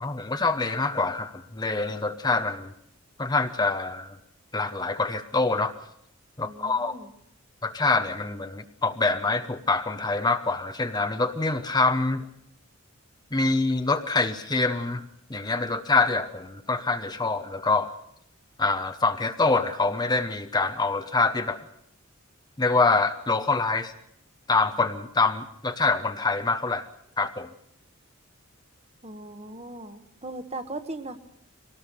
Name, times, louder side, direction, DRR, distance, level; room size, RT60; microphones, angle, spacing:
voice 1, 0.0-2.7 3.2-4.2 4.5-5.7 6.4-6.9 7.6-12.3 13.3-15.0 15.3-17.9 18.6-21.6 22.6-23.9 24.5-26.9 27.2-27.5, left 3 dB, 20° left, 9 dB, 0.8 m, -25 dB
voice 2, 6.4-7.1 29.0-31.2, right 2 dB, 30° right, 9 dB, 1.2 m, -38 dB
23.5 x 18.5 x 6.8 m, 0.72 s
head